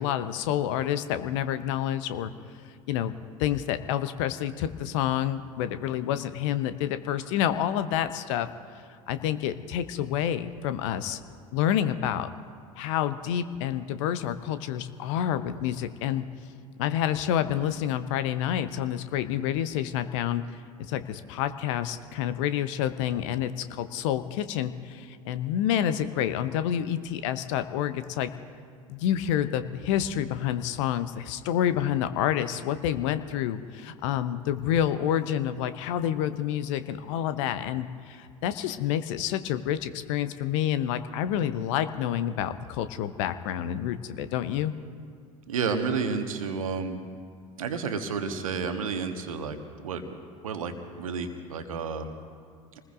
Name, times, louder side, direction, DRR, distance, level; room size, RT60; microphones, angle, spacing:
voice 1, 0.0-2.3 2.9-3.1 3.4-8.5 9.1-11.2 11.5-12.3 12.8-16.2 16.8-20.4 20.8-28.3 28.9-44.7, left 10 dB, 60° left, 12 dB, 0.9 m, -28 dB
voice 2, 45.5-47.0 47.6-50.0 50.4-52.1, right 5 dB, 75° right, 6 dB, 1.4 m, -31 dB
28.0 x 20.0 x 2.6 m, 2.1 s
figure-of-eight pair, 70°, 18 cm